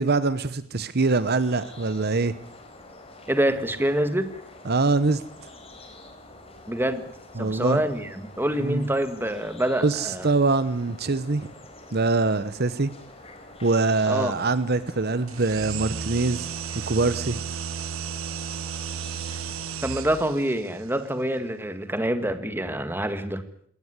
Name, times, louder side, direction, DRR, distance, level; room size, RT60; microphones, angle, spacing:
voice 1, 0.0-2.3 4.6-5.2 7.4-7.8 8.6-8.8 9.8-11.5 11.9-12.9 13.6-16.5 16.9-17.4, right 3 dB, 50° right, 14 dB, 1.0 m, -23 dB
sound 1, 1.0-19.7, left 2 dB, 30° left, 4.2 m, -47 dB
voice 2, 3.3-4.3 6.7-7.0 7.4-10.3 14.1-14.3 19.8-23.4, right 1 dB, 10° right, 10 dB, 1.8 m, -26 dB
sound 2, 15.3-20.5, right 7 dB, 80° right, 1.1 m, -33 dB
20.5 x 18.0 x 9.8 m, 0.63 s
head